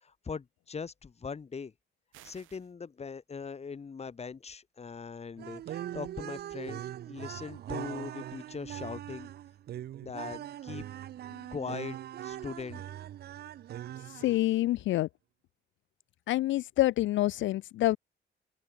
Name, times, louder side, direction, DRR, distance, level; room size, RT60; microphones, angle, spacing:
voice 1, 0.0-1.7 2.2-9.3 10.0-10.8 11.5-12.8, left 5 dB, 30° left, 1.7 m, -41 dB
sound 1, 2.1-2.7, right 16 dB, 90° right, 1.7 m, -55 dB
sad and silly vocal tune, 5.4-14.6, right 12 dB, 55° right, 0.5 m, -41 dB
voice 2, 14.0-15.1 16.3-18.0, left 15 dB, 75° left, 0.5 m, -27 dB
open air
cardioid pair, 90°, 20 cm